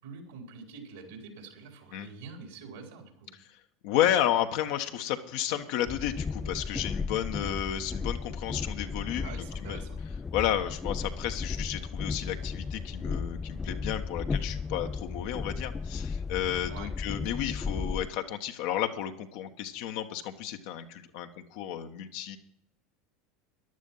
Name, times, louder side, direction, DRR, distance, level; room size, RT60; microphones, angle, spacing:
voice 1, 0.0-3.3 9.2-10.0 16.7-16.9, right 5 dB, 75° right, 2 dB, 4.1 m, -45 dB
voice 2, 3.8-9.8 10.3-22.4, left 11 dB, 65° left, 6 dB, 1.3 m, -32 dB
Train, 5.9-18.1, left 5 dB, 20° left, 0.5 m, -35 dB
14.5 x 11.5 x 5.6 m, 0.69 s
hypercardioid pair, 80°, 0 cm